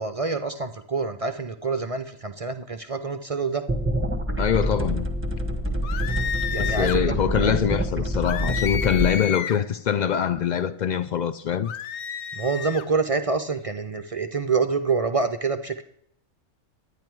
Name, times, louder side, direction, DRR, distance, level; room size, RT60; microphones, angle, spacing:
voice 1, 0.0-3.6 6.5-7.6 12.4-15.8, right 4 dB, 45° right, 0.4 m, -27 dB
sound 1, 3.7-9.1, equal, 10° right, 1.1 m, -26 dB
voice 2, 4.4-5.1 6.6-11.7, left 8 dB, 80° left, 0.4 m, -24 dB
sound 2, 5.8-7.0 8.2-9.7 11.6-12.9, left 8 dB, 65° left, 0.9 m, -31 dB
10.5 x 9.8 x 4.6 m
omnidirectional pair, 1.4 m